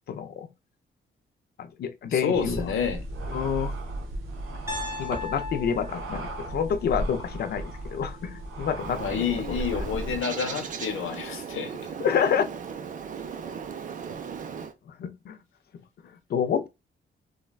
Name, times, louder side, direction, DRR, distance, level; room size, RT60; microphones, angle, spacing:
voice 1, 0.1-0.5 1.6-2.6 3.3-3.7 5.0-9.2 12.0-12.4 15.0-15.4 16.3-16.7, left 7 dB, 50° left, 0.4 m, -28 dB
voice 2, 2.1-3.0 9.0-11.9, left 6 dB, 80° left, 0.7 m, -29 dB
sound 1, 2.3-10.2, right 2 dB, 85° right, 0.9 m, -35 dB
Piano, 4.7-8.7, left 4 dB, 15° right, 0.8 m, -39 dB
Bird, 8.8-14.7, right 6 dB, 40° right, 0.4 m, -37 dB
3.2 x 2.2 x 2.2 m
wide cardioid pair, 165°, 21 cm